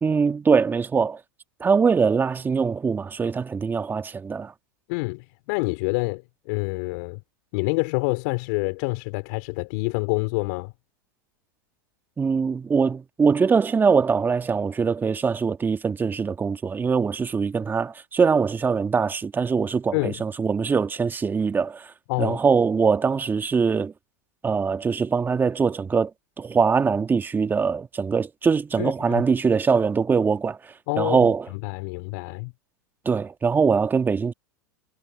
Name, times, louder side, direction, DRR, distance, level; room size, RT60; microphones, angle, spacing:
voice 1, 0.0-1.2 1.6-4.5 12.2-21.9 22.2-23.9 24.4-26.1 26.4-31.5 33.0-34.3, right 5 dB, 20° right, 1.5 m, -22 dB
voice 2, 4.9-6.2 6.5-7.2 7.5-10.7 19.9-20.2 22.1-22.4 28.8-29.2 30.9-32.5, left 30 dB, 60° left, 4.0 m, -27 dB
hypercardioid pair, 105°, 11 cm